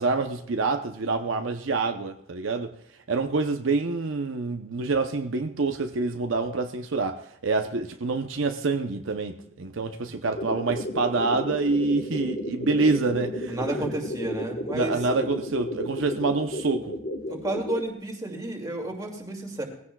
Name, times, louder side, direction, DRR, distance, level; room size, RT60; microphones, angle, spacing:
voice 1, 0.0-2.7 3.1-13.6 14.7-17.0, right 3 dB, 75° right, 0.7 m, -27 dB
sound 1, 10.3-17.9, left 1 dB, 50° left, 1.2 m, -33 dB
voice 2, 13.5-15.0 17.3-19.6, right 2 dB, 20° right, 2.3 m, -31 dB
20.0 x 15.5 x 2.3 m
head